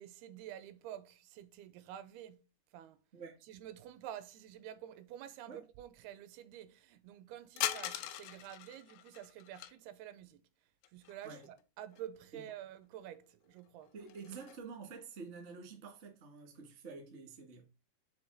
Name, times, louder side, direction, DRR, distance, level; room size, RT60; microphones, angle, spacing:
voice 1, 0.0-2.5 2.7-3.0 3.4-10.4 10.9-13.9, right 11 dB, 80° right, 2.5 m, -49 dB
voice 2, 3.1-3.4 5.5-5.6 11.2-11.5 12.3-12.4 13.9-17.7, right 4 dB, 50° right, 0.8 m, -49 dB
sound 1, 7.6-9.7 10.8-11.6 11.9-12.0 13.0-13.1 13.5-14.6, left 12 dB, 80° left, 2.2 m, -41 dB
7.0 x 3.7 x 5.1 m
omnidirectional pair, 4.6 m